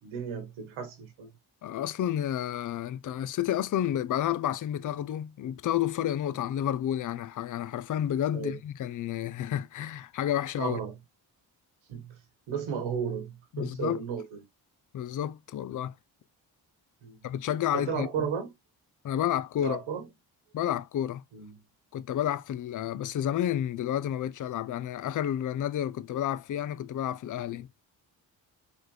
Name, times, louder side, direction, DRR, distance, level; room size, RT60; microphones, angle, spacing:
voice 1, 0.0-1.3 8.3-8.6 10.6-10.9 11.9-12.2 12.5-14.4 17.0-17.3 17.7-18.5 19.6-20.1 21.3-21.6, right 7 dB, 85° right, 1.5 m, -34 dB
voice 2, 1.6-10.8 13.5-14.0 14.9-15.9 17.2-18.3 19.0-19.8 20.5-21.2 21.9-27.7, left 11 dB, 45° left, 0.5 m, -30 dB
4.3 x 3.3 x 3.2 m
supercardioid pair, 45°, 47 cm